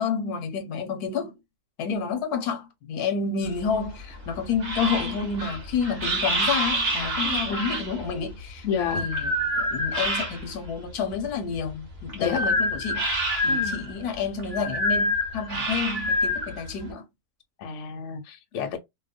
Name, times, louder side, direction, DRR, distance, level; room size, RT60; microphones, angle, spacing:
voice 1, 0.0-1.4 1.8-8.7 8.9-13.1 13.4-17.0, left 6 dB, 80° left, 1.2 m, -29 dB
sound 1, 3.5-10.7 11.1-16.9, equal, 45° right, 1.0 m, -27 dB
voice 2, 7.2-7.6 8.6-9.1 12.1-12.4 13.5-13.8 17.6-18.8, left 7 dB, 60° left, 0.8 m, -31 dB
2.7 x 2.1 x 2.4 m
omnidirectional pair, 1.7 m